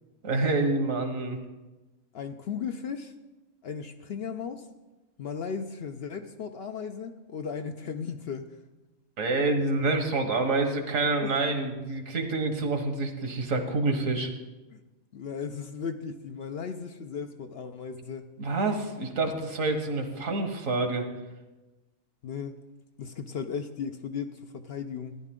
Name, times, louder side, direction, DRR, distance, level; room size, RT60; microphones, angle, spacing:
voice 1, 0.2-1.4 9.2-14.3 18.4-21.0, right 3 dB, 75° right, 5 dB, 1.7 m, -27 dB
voice 2, 2.1-3.1 3.6-4.7 5.2-8.5 11.2-11.4 14.7-14.8 15.1-18.3 20.2-20.3 22.2-22.5 23.0-25.2, left 6 dB, 60° left, 7 dB, 0.7 m, -36 dB
14.0 x 10.5 x 3.7 m, 1.1 s
omnidirectional pair, 1.4 m